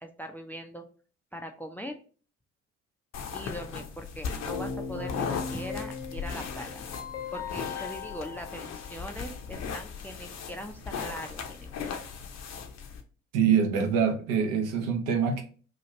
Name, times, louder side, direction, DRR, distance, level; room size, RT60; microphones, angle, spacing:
voice 1, 0.0-0.8 1.3-2.0 3.3-6.8 7.3-11.9, equal, 5° left, 0.4 m, -41 dB
sound 1, 3.1-13.0, left 6 dB, 45° left, 0.6 m, -38 dB
Keyboard (musical), 4.5-9.5, left 5 dB, 90° left, 0.6 m, -38 dB
voice 2, 13.3-15.4, right 7 dB, 70° right, 0.6 m, -25 dB
2.9 x 2.4 x 2.9 m
hypercardioid pair, 45°, 35 cm